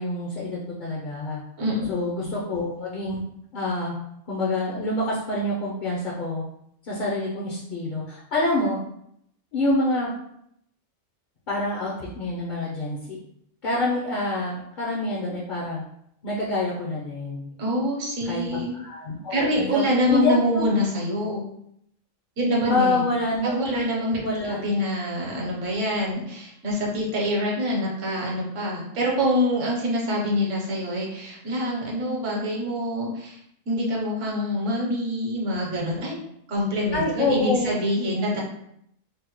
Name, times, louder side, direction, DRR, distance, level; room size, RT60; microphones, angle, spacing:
voice 1, 0.0-1.4 1.9-3.2 3.5-3.9 4.3-6.4 6.8-8.8 9.5-10.1 11.5-13.2 13.6-15.8 16.2-17.5 18.3-19.8 20.1-20.7 22.7-23.9 24.2-24.6 36.9-37.7, left 1 dB, 55° left, -5 dB, 0.6 m, -27 dB
voice 2, 1.6-1.9 17.6-18.7 19.3-21.4 22.4-23.0 23.4-33.4 33.7-36.1 36.5-38.4, left 1 dB, 65° right, -2 dB, 1.2 m, -25 dB
3.4 x 2.1 x 3.0 m, 0.74 s
omnidirectional pair, 1.4 m